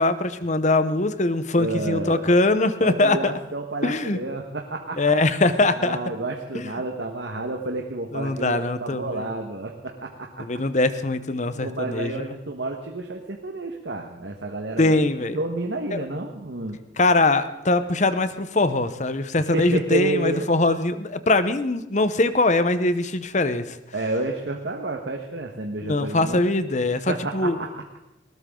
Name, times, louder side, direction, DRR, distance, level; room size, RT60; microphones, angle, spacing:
voice 1, 0.0-3.3 3.8-4.2 4.9-6.0 6.5-6.7 8.1-9.3 10.4-12.3 14.8-15.4 15.9-16.0 17.0-23.8 25.8-27.6, left 2 dB, 40° left, 12 dB, 0.9 m, -22 dB
voice 2, 1.6-2.3 2.8-5.0 5.7-10.4 11.5-15.1 15.3-16.8 19.5-20.4 23.9-26.4 27.1-27.8, right 2 dB, 65° right, 2 dB, 1.5 m, -30 dB
20.0 x 18.5 x 3.8 m, 0.93 s
head